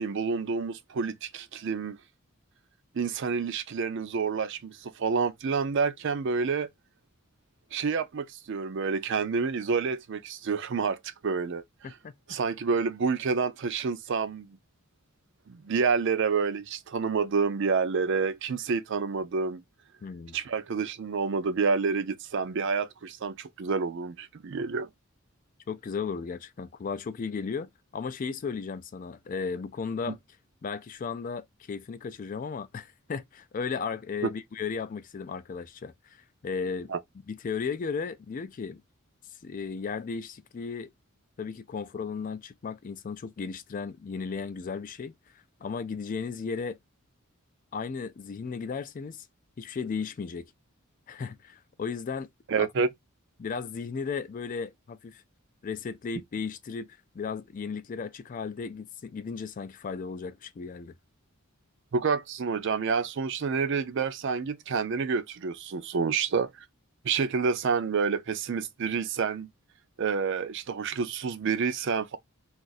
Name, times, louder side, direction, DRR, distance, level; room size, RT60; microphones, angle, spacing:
voice 1, 0.0-2.0 2.9-6.7 7.7-11.0 11.2-11.6 12.3-14.6 15.5-19.6 20.3-24.9 36.9-37.0 52.5-52.9 61.9-66.5 67.0-69.5 70.0-72.2, right 5 dB, 55° right, 0.4 m, -28 dB
voice 2, 20.0-20.4 25.7-30.2 30.6-36.9 37.3-38.8 39.4-40.9 41.4-46.8 47.7-49.3 49.6-50.5 51.1-52.3 52.6-52.7 53.4-55.2 55.6-56.9 57.1-60.9, left 5 dB, 40° left, 0.3 m, -35 dB
2.5 x 2.4 x 3.9 m
head